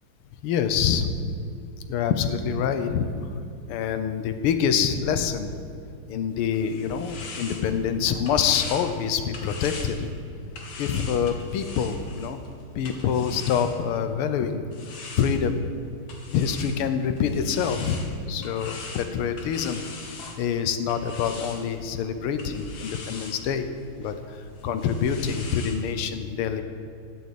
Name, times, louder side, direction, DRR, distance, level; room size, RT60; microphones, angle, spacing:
voice 1, 0.4-1.1 1.9-3.1 3.7-5.6 6.1-10.1 10.8-12.4 12.8-14.6 15.2-15.6 16.3-19.8 20.4-23.7 24.0-24.1 24.6-26.6, left 7 dB, 80° left, 9 dB, 1.7 m, -26 dB
Sweeping Broom, 6.3-14.1 14.7-25.8, left 3 dB, 65° left, 2.1 m, -42 dB
12.5 x 6.8 x 8.5 m, 2.4 s
omnidirectional pair, 2.4 m